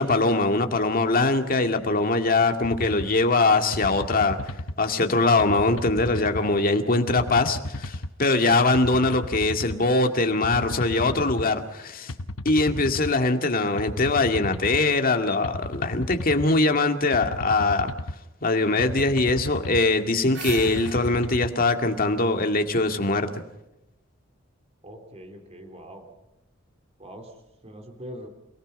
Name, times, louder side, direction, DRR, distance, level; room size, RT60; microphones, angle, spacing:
voice 1, 0.0-4.4 4.8-12.1 12.5-17.9 18.4-23.3, left 3 dB, 45° left, 6 dB, 2.1 m, -22 dB
sound 1, 2.7-3.1 3.7-4.8 5.4-6.4 7.1-8.1 8.7-9.8 10.4-11.5 12.1-13.1 13.8-14.8 15.4-16.5 17.1-18.2 18.8-19.8 20.5-21.5, left 1 dB, 85° left, 1.0 m, -34 dB
sound 2, 19.9-23.0, right 5 dB, 60° right, 2.7 m, -40 dB
voice 2, 24.8-26.0 27.0-27.3 27.6-28.3, equal, 35° right, 4 dB, 3.5 m, -42 dB
29.5 x 18.5 x 5.4 m, 0.90 s
head